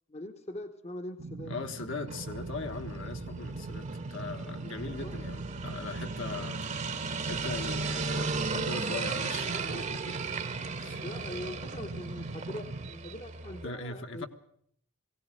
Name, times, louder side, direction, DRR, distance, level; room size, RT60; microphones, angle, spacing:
voice 1, 0.1-1.5 5.0-5.2 6.3-6.5 11.0-14.3, left 1 dB, 30° left, 1.0 m, -42 dB
sound 1, 1.2-12.9, right 3 dB, 75° right, 1.0 m, -41 dB
voice 2, 1.4-6.6 7.2-10.2 10.8-11.0 13.6-14.3, left 3 dB, 60° left, 1.5 m, -40 dB
sound 2, 2.1-13.7, right 4 dB, 35° right, 1.0 m, -36 dB
sound 3, 2.3-8.8, equal, 10° right, 0.8 m, -49 dB
20.5 x 17.0 x 7.7 m
head